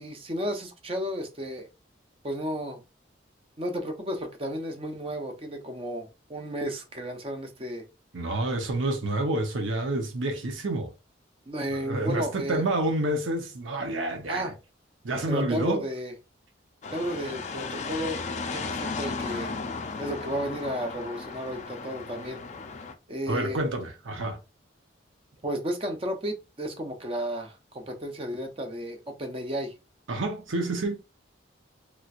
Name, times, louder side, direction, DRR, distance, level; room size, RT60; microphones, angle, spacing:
voice 1, 0.0-1.7 2.2-2.8 3.6-7.9 11.5-12.7 14.3-14.5 15.3-16.1 16.9-18.2 18.5-19.5 20.0-22.4 23.1-23.6 25.4-29.7, equal, 30° right, 0.6 m, -33 dB
voice 2, 8.1-10.9 11.7-14.5 15.0-15.9 23.3-24.4 30.1-31.0, right 2 dB, 90° right, 0.8 m, -28 dB
sound 1, 16.8-22.9, left 4 dB, 35° left, 0.3 m, -35 dB
3.2 x 2.9 x 2.4 m
head